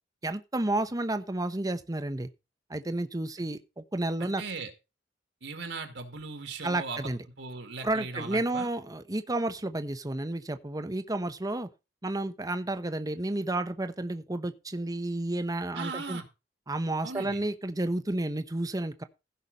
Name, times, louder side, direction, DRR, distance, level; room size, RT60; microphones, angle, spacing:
voice 1, 0.2-2.3 2.7-4.4 6.6-7.2 7.8-11.7 12.0-16.2 16.7-19.0, right 2 dB, 20° right, 0.9 m, -31 dB
voice 2, 4.2-4.7 5.4-8.7 15.7-16.3 17.0-17.4, right 4 dB, 70° right, 2.2 m, -38 dB
15.5 x 5.9 x 5.3 m
head